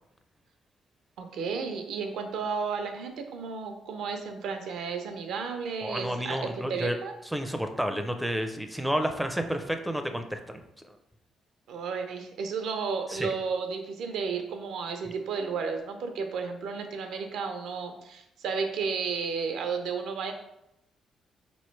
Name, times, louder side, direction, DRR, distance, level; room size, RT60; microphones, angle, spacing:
voice 1, 1.2-7.1 11.7-20.3, right 5 dB, 80° right, 5 dB, 0.5 m, -33 dB
voice 2, 5.8-7.0 7.3-10.6 10.9-11.0 13.1-13.3, equal, 5° right, 6 dB, 0.4 m, -30 dB
4.0 x 3.0 x 3.2 m, 0.83 s
cardioid pair, 75°, 0 cm